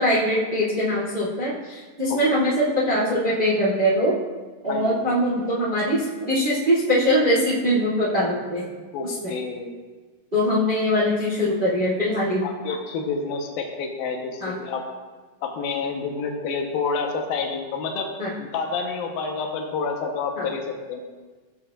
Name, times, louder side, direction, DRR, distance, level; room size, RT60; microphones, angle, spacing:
voice 1, 0.0-4.1 4.6-8.7 9.0-9.3 10.3-12.5 14.4-14.6 18.2-18.3 20.3-20.5, equal, 20° right, -6 dB, 1.5 m, -22 dB
voice 2, 8.9-9.7 12.4-14.8 15.4-18.1 18.4-20.6 20.9-21.0, left 4 dB, 70° left, 2 dB, 2.6 m, -28 dB
17.0 x 7.6 x 2.5 m, 1.3 s
omnidirectional pair, 4.8 m